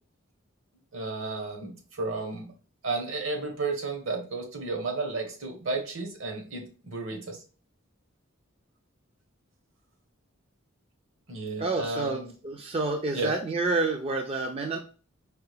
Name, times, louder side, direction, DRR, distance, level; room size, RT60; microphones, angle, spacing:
voice 1, 0.9-2.5 2.8-7.4 11.3-12.3 13.1-13.3, right 3 dB, 70° right, 3 dB, 1.2 m, -33 dB
voice 2, 11.6-14.8, right 3 dB, 30° right, 3 dB, 0.4 m, -29 dB
4.6 x 2.6 x 3.3 m, 0.36 s
head